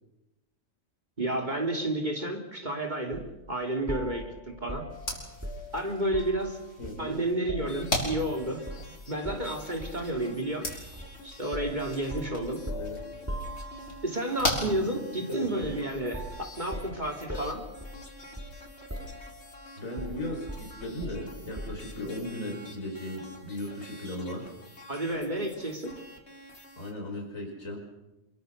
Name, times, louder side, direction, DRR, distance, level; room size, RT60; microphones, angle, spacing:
voice 1, 1.2-4.9 5.7-6.6 7.0-8.6 9.1-10.7 11.2-12.6 14.0-16.3 16.6-17.6 24.9-26.0, right 1 dB, 35° right, 4 dB, 3.0 m, -31 dB
sound 1, 3.1-3.3 3.9-6.5 6.8-8.3 8.7-8.9 9.2-10.1 11.0-11.2 11.5-14.1 15.6-15.9 16.1-18.6 18.9-19.5 20.0-21.9, equal, 10° right, 4.4 m, -40 dB
sound 2, 4.9-15.5, left 1 dB, 65° left, 6.0 m, -38 dB
voice 2, 6.8-7.2 12.7-13.0 15.2-15.7 19.8-24.5 26.8-27.8, left 1 dB, 85° left, 1 dB, 5.8 m, -37 dB
sound 3, 7.7-26.9, left 1 dB, 50° left, 3.9 m, -49 dB
27.5 x 22.5 x 6.6 m, 0.95 s
omnidirectional pair, 1.4 m